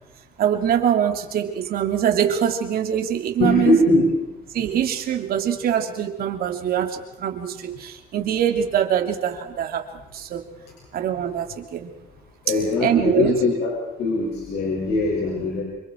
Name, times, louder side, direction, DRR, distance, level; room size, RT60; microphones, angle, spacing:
voice 1, 0.4-3.8 4.5-10.4 10.9-11.9 12.8-13.4, right 9 dB, 65° right, 4 dB, 3.0 m, -23 dB
voice 2, 3.4-4.1 12.4-15.6, left 2 dB, 75° left, -2 dB, 6.2 m, -21 dB
28.5 x 25.0 x 4.6 m, 0.92 s
cardioid pair, 110°, 17 cm